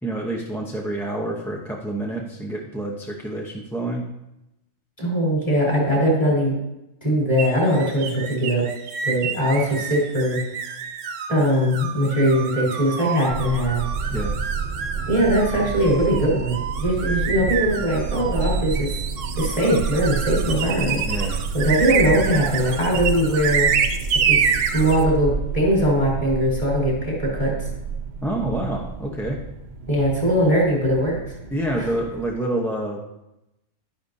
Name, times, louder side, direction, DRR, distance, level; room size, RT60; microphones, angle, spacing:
voice 1, 0.0-4.1 14.1-14.3 21.1-21.4 28.2-29.4 31.5-33.0, right 1 dB, ahead, -1 dB, 0.6 m, -27 dB
voice 2, 5.0-6.5 7.0-8.7 9.0-10.4 11.3-13.8 15.1-19.0 19.4-21.0 21.5-23.7 24.2-27.7 29.9-31.2 31.8-31.9, equal, 25° left, -5 dB, 3.8 m, -21 dB
sound 1, 7.4-25.1, right 7 dB, 70° right, 1.0 m, -28 dB
sound 2, 13.3-32.3, right 4 dB, 50° right, 0.6 m, -30 dB
11.5 x 10.0 x 2.7 m, 0.90 s
omnidirectional pair, 1.4 m